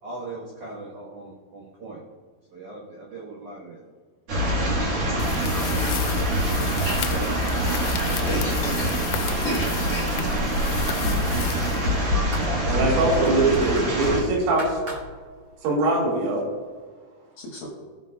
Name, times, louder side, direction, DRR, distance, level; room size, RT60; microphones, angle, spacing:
voice 1, 0.0-2.0 2.5-3.8 6.9-8.1, right 3 dB, 75° right, -5 dB, 1.8 m, -39 dB
sound 1, 4.3-14.2, equal, 55° right, 1.8 m, -24 dB
sound 2, 5.2-12.3, left 11 dB, 85° left, 3.2 m, -35 dB
voice 2, 8.3-9.0 9.4-10.4 17.4-17.7, left 1 dB, 65° left, -2 dB, 2.5 m, -32 dB
sound 3, 9.8-15.7 16.0-16.1, equal, 35° right, 1.7 m, -41 dB
voice 3, 12.6-14.8 15.6-16.4, right 2 dB, 90° right, -2 dB, 4.9 m, -22 dB
17.5 x 7.0 x 2.4 m, 1.5 s
omnidirectional pair, 5.7 m